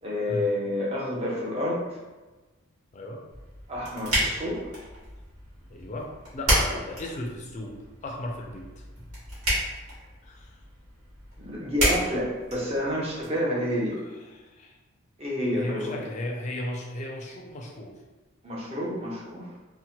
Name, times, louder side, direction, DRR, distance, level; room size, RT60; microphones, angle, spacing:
voice 1, 0.0-1.8 3.7-4.7 11.4-14.0 15.2-16.0 18.4-19.5, left 1 dB, 25° right, -4 dB, 0.6 m, -29 dB
sound 1, 3.3-13.3, right 1 dB, 75° right, 1.3 m, -31 dB
voice 2, 5.7-7.8 8.0-8.8 10.2-10.6 13.9-14.8 15.5-17.9, left 1 dB, 30° left, 0 dB, 0.3 m, -36 dB
2.9 x 2.0 x 2.7 m, 1.2 s
head